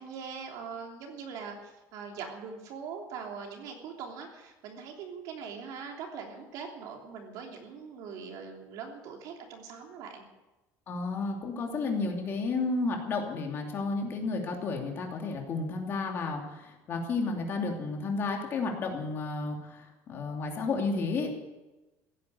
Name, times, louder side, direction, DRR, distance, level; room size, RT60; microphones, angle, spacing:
voice 1, 0.0-10.3, right 6 dB, 60° right, 2 dB, 3.2 m, -42 dB
voice 2, 10.9-21.3, left 3 dB, 35° left, 2 dB, 2.7 m, -32 dB
16.0 x 10.0 x 8.1 m, 1.1 s
cardioid pair, 175°, 7 cm